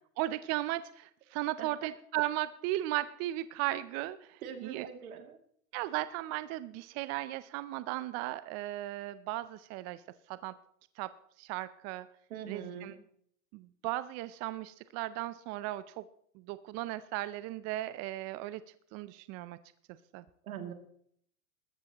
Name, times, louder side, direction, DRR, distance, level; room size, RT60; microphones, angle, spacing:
voice 1, 0.2-4.9 5.7-10.0 10.3-10.5 11.0-11.1 11.4-12.1 12.5-12.9 13.5-16.1 16.3-18.6 18.9-19.6 20.1-20.2, right 16 dB, 40° right, 14 dB, 0.5 m, -36 dB
voice 2, 4.4-5.4 12.3-13.0 20.4-20.7, right 8 dB, 80° right, 5 dB, 2.5 m, -42 dB
20.5 x 13.5 x 2.9 m, 0.65 s
hypercardioid pair, 120°, 42 cm